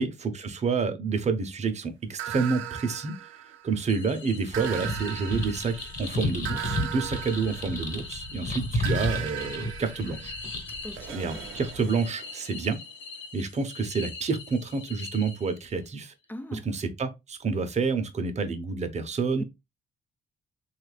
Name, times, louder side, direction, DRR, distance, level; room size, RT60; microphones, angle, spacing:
voice 1, 0.0-3.1 3.6-10.3 11.1-12.8 13.3-16.1 16.5-19.4, right 4 dB, 35° right, 0.6 m, -29 dB
sound 1, 2.2-3.9 4.5-8.2 8.8-12.6, right 12 dB, 90° right, 0.4 m, -38 dB
sound 2, 3.9-15.8, left 4 dB, 70° left, 0.8 m, -44 dB
sound 3, 4.5-12.0, left 1 dB, 40° left, 1.2 m, -33 dB
voice 2, 10.7-11.5 16.3-16.7 19.4-19.5, left 1 dB, 10° left, 0.3 m, -40 dB
3.1 x 2.4 x 3.2 m
cardioid pair, 90°, 20 cm